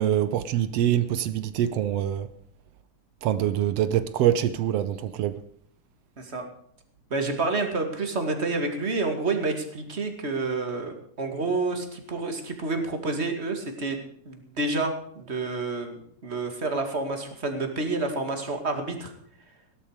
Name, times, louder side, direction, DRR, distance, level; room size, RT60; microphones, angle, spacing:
voice 1, 0.0-2.3 3.2-5.4, right 11 dB, 75° right, 1.5 m, -24 dB
voice 2, 6.2-6.5 7.1-14.0 14.3-19.1, right 3 dB, 25° right, 1.9 m, -29 dB
17.0 x 12.0 x 5.0 m
omnidirectional pair, 3.6 m